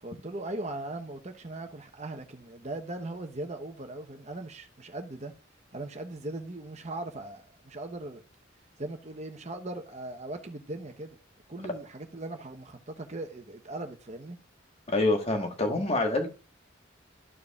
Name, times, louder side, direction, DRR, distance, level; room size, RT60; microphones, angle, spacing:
voice 1, 0.0-5.3 5.7-8.2 8.8-11.2 11.5-14.4, right 2 dB, 35° right, 1.0 m, -39 dB
voice 2, 14.9-16.3, left 2 dB, 35° left, 1.5 m, -26 dB
13.5 x 4.7 x 2.4 m
head